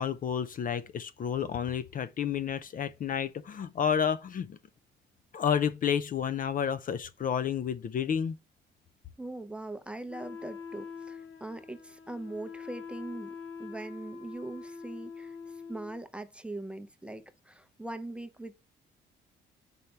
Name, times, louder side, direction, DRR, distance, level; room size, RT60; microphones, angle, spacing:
voice 1, 0.0-4.6 5.3-8.4, left 8 dB, 45° left, 0.4 m, -30 dB
voice 2, 9.2-18.6, right 2 dB, 5° right, 0.6 m, -41 dB
Wind instrument woodwind instrument, 10.1-16.0, left 5 dB, 75° left, 1.0 m, -44 dB
5.4 x 3.2 x 5.6 m
cardioid pair, 90°, 20 cm